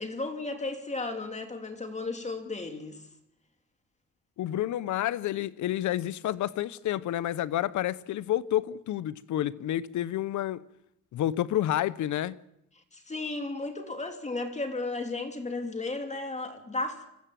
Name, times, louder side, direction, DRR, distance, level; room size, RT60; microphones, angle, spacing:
voice 1, 0.0-3.0 12.9-17.1, left 3 dB, 25° left, 2.6 m, -34 dB
voice 2, 4.4-10.6 11.1-12.4, left 12 dB, 75° left, 0.8 m, -29 dB
25.5 x 15.5 x 7.6 m
cardioid pair, 90°, 30 cm